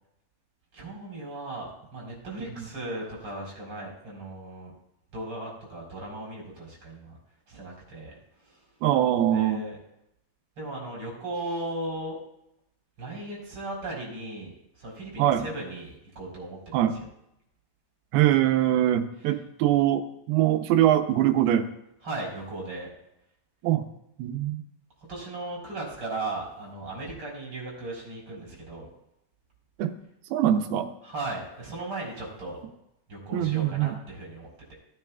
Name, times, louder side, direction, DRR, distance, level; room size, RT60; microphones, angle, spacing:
voice 1, 0.7-4.7 5.1-7.2 7.5-8.2 9.3-9.8 10.6-12.2 13.0-14.5 14.8-16.8 22.0-22.9 25.1-28.9 31.0-32.6 33.1-34.7, right 2 dB, 35° right, -3 dB, 4.7 m, -37 dB
voice 2, 8.8-9.6 15.2-15.5 16.7-17.0 18.1-21.7 23.6-23.9 24.2-24.6 29.8-30.0 30.3-30.9 33.3-34.0, right 12 dB, 80° right, 7 dB, 2.6 m, -23 dB
17.5 x 9.5 x 2.3 m, 0.81 s
omnidirectional pair, 4.6 m